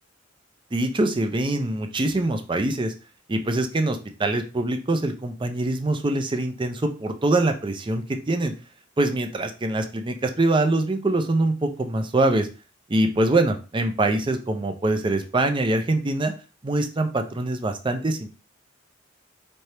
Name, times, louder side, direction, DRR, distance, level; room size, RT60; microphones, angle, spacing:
voice 1, 0.7-2.9 3.3-8.5 9.0-12.5 12.9-16.3 16.6-18.3, right 2 dB, 25° right, 6 dB, 0.5 m, -24 dB
4.3 x 2.8 x 3.3 m, 0.33 s
head